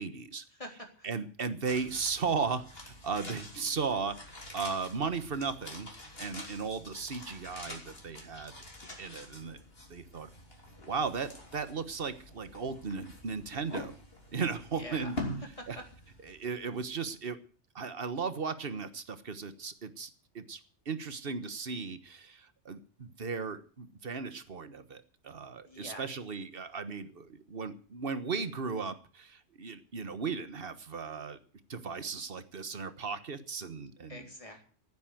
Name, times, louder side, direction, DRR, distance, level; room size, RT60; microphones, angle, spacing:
voice 1, 0.0-0.4 1.0-5.9 6.2-8.5 9.0-9.6 9.9-10.3 10.9-14.0 14.3-15.2 15.7-15.8 16.2-17.4 17.7-20.6 20.8-31.4 31.7-34.3, right 5 dB, 50° right, 11 dB, 1.5 m, -36 dB
voice 2, 0.6-1.1 14.7-15.1 15.6-15.7 25.7-26.0 34.1-34.6, left 1 dB, 25° left, 2 dB, 3.8 m, -45 dB
sound 1, 1.6-16.8 17.1-17.2, left 1 dB, 50° left, 3.6 m, -46 dB
15.0 x 9.6 x 7.8 m, 0.42 s
omnidirectional pair, 1.2 m